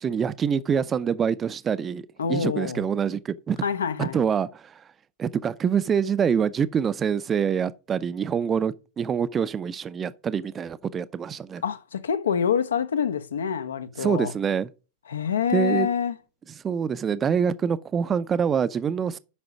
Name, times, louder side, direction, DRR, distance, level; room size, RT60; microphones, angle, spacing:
voice 1, 0.0-3.6 4.0-4.7 5.2-11.6 14.0-14.7 15.5-15.9 16.6-19.2, right 7 dB, 20° right, 0.6 m, -25 dB
voice 2, 2.2-2.8 3.6-4.2 11.6-14.3 15.1-16.2, left 7 dB, 65° left, 1.0 m, -26 dB
8.7 x 5.8 x 6.1 m
figure-of-eight pair, 90°, 0 cm